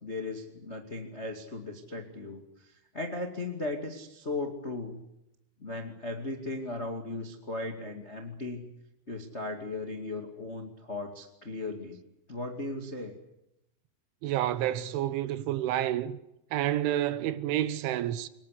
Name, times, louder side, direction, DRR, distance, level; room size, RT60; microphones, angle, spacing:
voice 1, 0.0-5.0 5.6-8.7 9.1-12.0 12.3-13.1, left 2 dB, 60° left, 0.7 m, -37 dB
voice 2, 14.2-16.2 16.5-18.3, right 12 dB, 75° right, 3.3 m, -29 dB
25.0 x 21.0 x 8.4 m
omnidirectional pair, 5.8 m